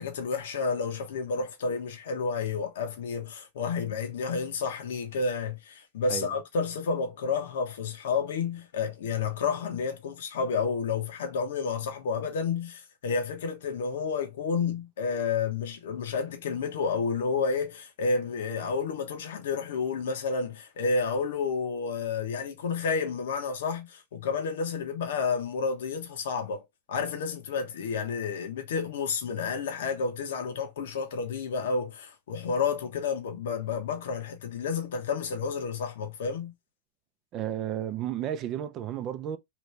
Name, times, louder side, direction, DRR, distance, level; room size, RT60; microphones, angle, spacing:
voice 1, 0.0-36.5, left 5 dB, 80° left, 1.0 m, -30 dB
voice 2, 37.3-39.4, right 10 dB, 35° right, 0.4 m, -32 dB
3.0 x 2.6 x 3.3 m
supercardioid pair, 145°, 0 cm